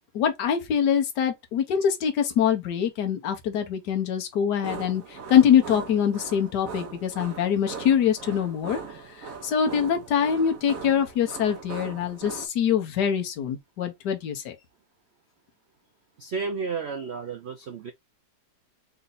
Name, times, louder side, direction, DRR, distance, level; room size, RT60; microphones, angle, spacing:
voice 1, 0.1-8.8 9.4-14.5, left 8 dB, 70° left, 1.5 m, -24 dB
sound 1, 4.6-12.5, right 5 dB, 55° right, 1.2 m, -40 dB
voice 2, 16.2-17.9, right 5 dB, 75° right, 0.6 m, -32 dB
4.2 x 2.7 x 4.0 m
omnidirectional pair, 1.9 m